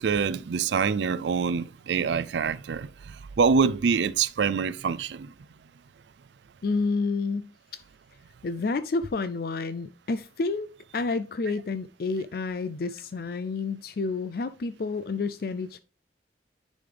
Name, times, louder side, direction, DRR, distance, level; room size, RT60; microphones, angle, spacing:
voice 1, 0.0-5.3, right 5 dB, 80° right, 0.4 m, -25 dB
voice 2, 6.6-7.8 8.4-15.8, left 3 dB, 55° left, 0.4 m, -30 dB
10.0 x 5.2 x 3.4 m
head